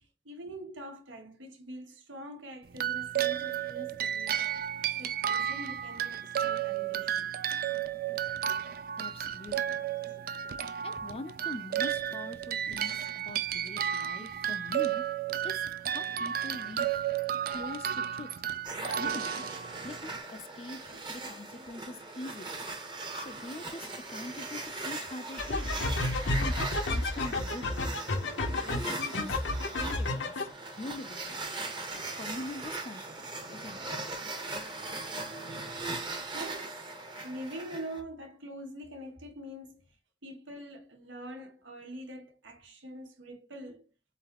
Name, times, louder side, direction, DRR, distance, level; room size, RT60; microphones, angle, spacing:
voice 1, 0.0-4.5 5.0-7.3 10.0-10.2 20.9-21.1 21.5-21.7 24.3-24.4 30.1-30.2 34.4-34.5 36.3-36.9 37.2-39.9 40.2-43.9, right 1 dB, 85° right, 1.3 m, -44 dB
sound 1, 2.7-20.2, right 10 dB, 50° right, 0.3 m, -33 dB
voice 2, 9.0-9.8 10.8-15.0 15.4-17.0 17.5-18.3 19.0-19.4 19.8-20.8 21.1-22.7 23.1-25.8 26.4-28.2 28.4-30.5 30.8-31.4 31.9-33.9, left 2 dB, 30° left, 0.5 m, -43 dB
sound 2, 18.6-38.0, right 2 dB, 25° right, 0.8 m, -40 dB
sound 3, 25.4-30.5, left 2 dB, 75° left, 0.9 m, -31 dB
4.0 x 3.9 x 2.9 m
head